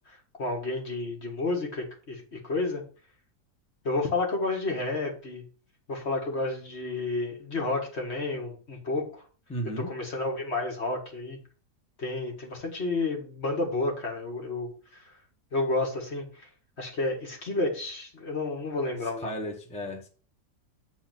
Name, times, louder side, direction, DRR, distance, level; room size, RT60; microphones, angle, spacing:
voice 1, 0.1-2.8 3.8-5.4 5.9-9.2 9.9-11.4 12.0-15.2 15.5-16.5 16.8-19.3, left 2 dB, 40° left, 1 dB, 2.0 m, -31 dB
voice 2, 9.5-9.9 19.0-20.1, equal, 5° left, 2 dB, 1.0 m, -35 dB
7.8 x 4.2 x 5.9 m, 0.39 s
omnidirectional pair, 1.8 m